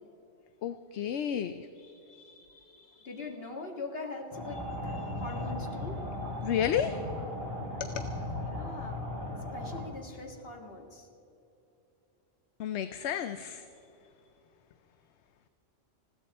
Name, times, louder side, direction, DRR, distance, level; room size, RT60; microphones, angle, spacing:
voice 1, 0.6-3.1 4.9-5.1 6.4-7.0 7.8-8.1 12.6-13.7, left 9 dB, 80° left, 10 dB, 0.9 m, -33 dB
voice 2, 3.0-4.6 5.1-6.0 8.4-9.0 9.5-11.1, left 3 dB, 60° left, 1 dB, 2.1 m, -42 dB
sound 1, 4.3-9.8, left 1 dB, 15° right, 3.5 m, -37 dB
20.5 x 16.0 x 4.2 m, 2.9 s
omnidirectional pair, 1.1 m